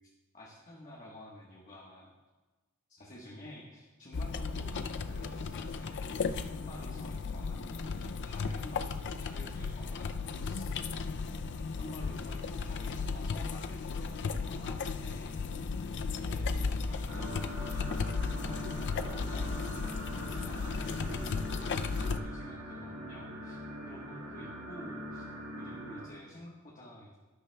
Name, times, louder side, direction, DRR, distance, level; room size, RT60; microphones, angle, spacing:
voice 1, 0.3-2.1 2.9-15.6 16.3-17.8 18.5-19.5 20.1-21.6 22.0-23.6 23.8-25.3 25.6-27.1, left 1 dB, 35° left, -4 dB, 1.4 m, -50 dB
sound 1, 4.1-22.2, left 4 dB, 55° left, 0.4 m, -35 dB
sound 2, 17.1-26.1, equal, 65° right, 2.1 m, -42 dB
12.0 x 12.0 x 2.3 m, 1.2 s
head